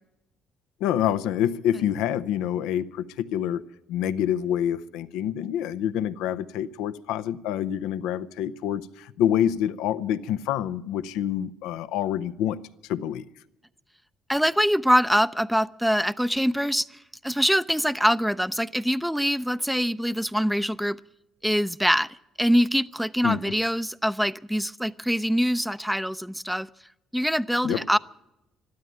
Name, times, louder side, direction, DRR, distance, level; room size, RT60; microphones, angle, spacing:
voice 1, 0.8-3.6 3.9-12.6 12.9-13.2 23.2-23.5 27.6-27.8, left 10 dB, 85° left, 0.6 m, -27 dB
voice 2, 14.3-16.9 17.2-21.0 21.4-26.7 27.1-28.0, equal, ahead, 0.5 m, -24 dB
13.0 x 12.5 x 9.1 m
supercardioid pair, 75°, 0 cm